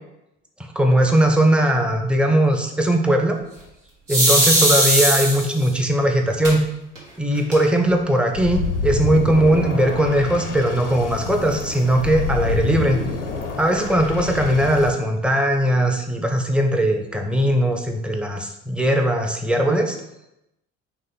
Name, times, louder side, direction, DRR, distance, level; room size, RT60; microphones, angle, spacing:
voice 1, 0.7-3.4 4.1-6.6 7.2-13.0 13.6-20.0, right 1 dB, 5° right, 3 dB, 0.6 m, -19 dB
sound 1, 4.1-5.7 6.4-6.5 7.0-7.1 7.3-7.9, right 1 dB, 85° right, 1.0 m, -18 dB
sound 2, 8.3-14.9, left 4 dB, 80° left, 0.6 m, -27 dB
4.2 x 3.1 x 4.0 m, 0.86 s
figure-of-eight pair, 55°, 36 cm